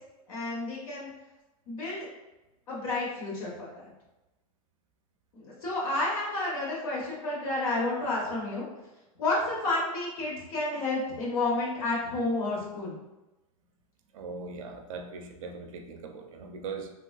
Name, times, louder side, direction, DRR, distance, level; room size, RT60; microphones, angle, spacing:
voice 1, 0.3-1.1 1.7-2.1 2.7-3.8 5.3-8.6 9.2-13.0, left 2 dB, 70° left, -5 dB, 1.4 m, -30 dB
voice 2, 14.1-16.9, right 4 dB, 60° right, 5 dB, 0.5 m, -40 dB
3.1 x 2.8 x 2.4 m, 1.0 s
supercardioid pair, 155°, 19 cm